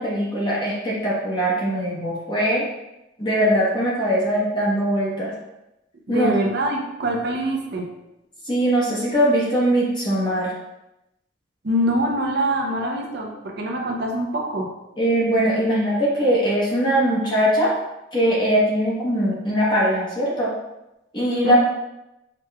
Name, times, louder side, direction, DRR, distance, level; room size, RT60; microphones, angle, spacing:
voice 1, 0.0-2.6 3.2-5.3 6.1-6.3 8.5-10.5 15.0-17.7 18.1-20.5 21.1-21.6, equal, 25° left, -7 dB, 0.9 m, -21 dB
voice 2, 6.1-7.9 11.6-14.7 21.4-21.6, right 1 dB, 55° right, 1 dB, 0.6 m, -24 dB
4.9 x 3.0 x 2.3 m, 0.93 s
head